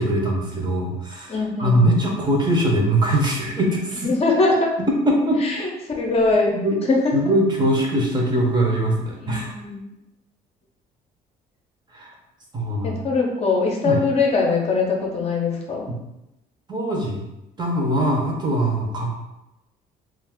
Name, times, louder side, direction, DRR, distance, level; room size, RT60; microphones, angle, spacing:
voice 1, 0.0-4.1 5.1-5.4 6.5-6.8 7.1-9.5 11.9-12.1 12.5-13.0 13.8-14.0 15.9-16.0 16.7-17.2 17.6-19.1, right 1 dB, 25° right, -1 dB, 0.7 m, -22 dB
voice 2, 1.3-1.8 4.0-4.7 5.4-6.6 6.9-7.1 9.2-9.8 12.8-15.9, left 3 dB, 40° left, -1 dB, 0.6 m, -22 dB
2.4 x 2.4 x 3.5 m, 0.90 s
cardioid pair, 110°, 17 cm